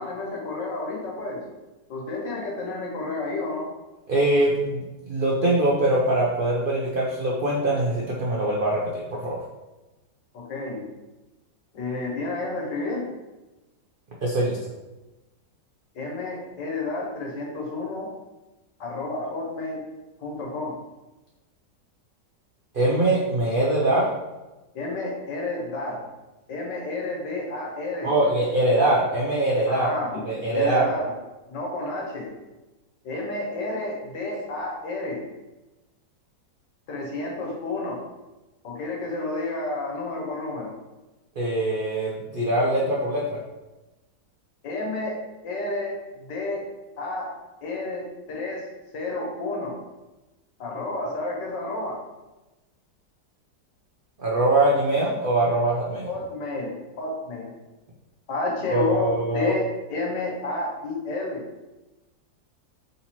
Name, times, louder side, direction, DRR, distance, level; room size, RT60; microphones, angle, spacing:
voice 1, 0.0-1.4 1.9-3.6 10.3-10.9 11.7-13.1 15.9-18.1 18.8-19.8 20.2-20.8 24.7-26.0 26.5-28.5 29.7-30.2 30.5-31.1 31.5-32.3 33.0-35.2 36.9-38.0 38.6-40.7 44.6-45.2 45.4-46.6 47.0-47.3 47.6-48.0 48.3-48.6 48.9-49.8 50.6-52.0 56.1-57.5 58.3-59.1 59.3-61.4, left 2 dB, 80° left, -2 dB, 1.7 m, -30 dB
voice 2, 4.1-9.4 14.2-14.6 22.7-24.1 28.0-29.9 30.3-30.9 41.4-43.4 54.2-56.1 58.7-59.5, right 1 dB, 85° right, -4 dB, 0.4 m, -23 dB
4.2 x 3.9 x 2.9 m, 1.1 s
omnidirectional pair, 1.9 m